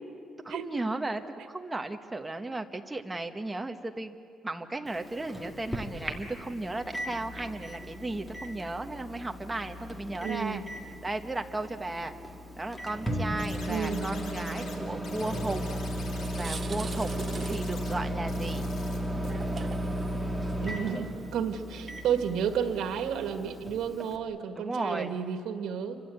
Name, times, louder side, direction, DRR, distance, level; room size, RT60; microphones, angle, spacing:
voice 1, 0.4-4.2 4.4-10.6 11.0-12.1 12.6-15.8 16.3-17.1 17.4-18.6 24.5-25.1, right 2 dB, 10° right, 5 dB, 1.2 m, -35 dB
Microwave oven, 4.9-24.2, equal, 5° left, 2.0 m, -35 dB
voice 2, 10.2-10.6 13.7-14.0 20.6-26.0, right 8 dB, 80° right, 7 dB, 2.0 m, -31 dB
sound 1, 13.4-14.8 15.0-16.6 16.9-17.9 18.3-19.0 19.2-19.3, left 4 dB, 60° left, 4.1 m, -47 dB
sound 2, 16.2-23.4, right 5 dB, 30° right, 1.0 m, -43 dB
29.0 x 25.0 x 8.0 m, 2.4 s
cardioid pair, 160°, 0 cm